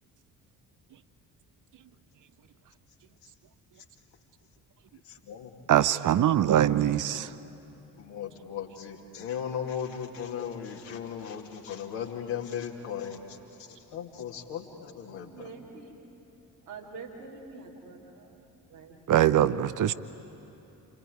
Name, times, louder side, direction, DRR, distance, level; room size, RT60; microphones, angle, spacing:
voice 1, 5.0-5.7 8.0-15.5, left 8 dB, 60° left, 0 dB, 2.5 m, -37 dB
voice 2, 5.7-7.3 19.1-19.9, right 11 dB, 40° right, 15 dB, 0.8 m, -22 dB
voice 3, 15.1-16.1 16.6-19.0, right 4 dB, 80° right, -2 dB, 3.0 m, -46 dB
28.5 x 22.0 x 9.4 m, 2.9 s
figure-of-eight pair, 40°, 48 cm